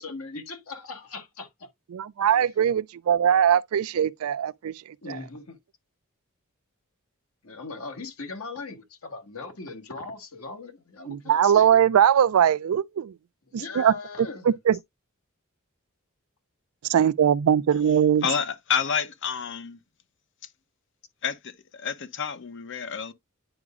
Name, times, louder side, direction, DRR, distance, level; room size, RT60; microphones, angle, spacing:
voice 1, 0.0-1.7 2.2-2.4 5.0-5.6 7.4-11.8 13.5-14.6, left 3 dB, 75° left, 1.5 m, -39 dB
voice 2, 1.9-4.7 5.1-5.2 11.1-13.1 13.5-13.9 14.7-14.8 16.9-18.2, right 9 dB, 80° right, 0.4 m, -21 dB
voice 3, 18.2-19.8 21.2-23.1, left 7 dB, 60° left, 0.7 m, -29 dB
9.7 x 4.8 x 2.4 m
head